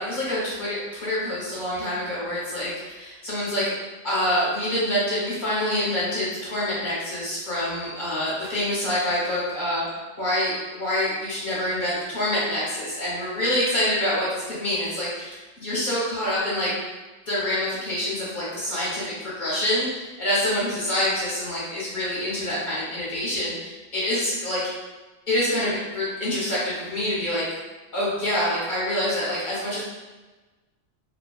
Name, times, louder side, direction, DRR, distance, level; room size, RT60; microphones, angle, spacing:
voice 1, 0.0-3.7 4.0-9.8 10.2-16.7 17.3-24.6 25.3-27.4 27.9-29.8, left 1 dB, 40° left, -8 dB, 1.2 m, -26 dB
2.9 x 2.3 x 2.3 m, 1.2 s
omnidirectional pair, 1.3 m